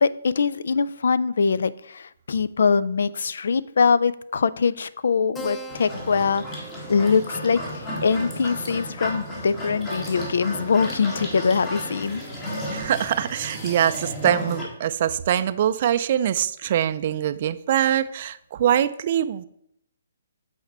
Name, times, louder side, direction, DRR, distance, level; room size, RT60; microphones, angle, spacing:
voice 1, 0.0-6.4 6.9-12.2, left 5 dB, 70° left, 17 dB, 0.3 m, -23 dB
Keyboard (musical), 5.3-10.3, right 3 dB, 5° left, 0.5 m, -43 dB
sound 1, 5.7-14.7, equal, 20° left, 1.6 m, -33 dB
voice 2, 12.7-19.4, right 10 dB, 45° right, 14 dB, 0.4 m, -23 dB
8.0 x 4.3 x 4.2 m, 0.73 s
hypercardioid pair, 150°, 0 cm